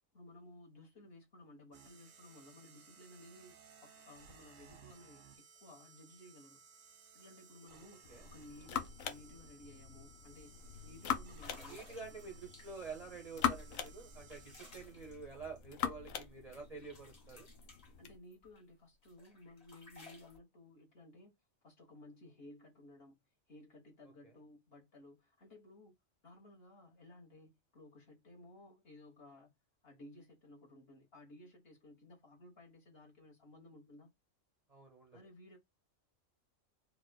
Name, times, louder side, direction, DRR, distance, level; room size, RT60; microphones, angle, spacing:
voice 1, 0.1-6.6 7.1-11.8 18.0-21.3 21.6-23.2 23.5-25.9 26.2-29.5 29.8-34.1 35.1-35.6, left 1 dB, 50° left, 1.5 m, -57 dB
sound 1, 1.7-15.1, right 6 dB, 90° right, 1.3 m, -61 dB
voice 2, 7.7-8.3 11.6-17.5 34.7-35.2, right 4 dB, 35° right, 0.7 m, -49 dB
sound 2, 8.0-18.2, left 8 dB, 85° left, 1.1 m, -42 dB
sound 3, 9.3-9.5 9.8-10.1 10.7-10.8 11.3-13.0 13.6-16.3 16.5-18.6 19.0-20.4, left 2 dB, 30° left, 1.2 m, -59 dB
4.7 x 2.2 x 2.2 m
omnidirectional pair, 1.3 m